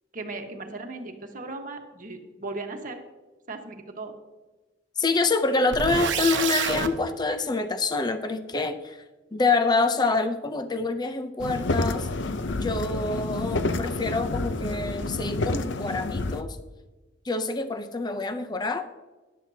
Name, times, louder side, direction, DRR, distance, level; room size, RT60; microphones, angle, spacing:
voice 1, 0.1-3.0 3.5-4.1, right 3 dB, 45° right, 4 dB, 1.4 m, -37 dB
voice 2, 5.0-9.0 9.3-12.1 12.6-16.6 17.3-18.8, left 3 dB, 20° left, 9 dB, 0.6 m, -26 dB
sound 1, 5.7-6.9, right 6 dB, 75° right, 1.0 m, -27 dB
sound 2, 11.4-16.4, left 2 dB, 75° left, 0.7 m, -29 dB
13.5 x 11.5 x 2.8 m, 1.2 s
head